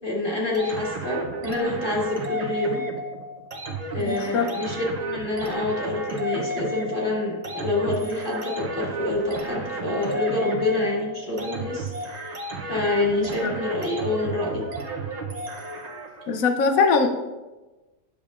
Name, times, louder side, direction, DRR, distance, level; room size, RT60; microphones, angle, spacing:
voice 1, 0.0-2.8 3.9-12.4 12.7-14.6, left 2 dB, 30° left, -5 dB, 2.4 m, -27 dB
sound 1, 0.5-16.3, right 2 dB, 55° right, 0.4 m, -33 dB
voice 2, 4.0-4.5 13.2-13.5 16.3-17.1, left 5 dB, 60° left, 6 dB, 1.1 m, -22 dB
10.5 x 6.9 x 2.5 m, 1.1 s
omnidirectional pair, 1.8 m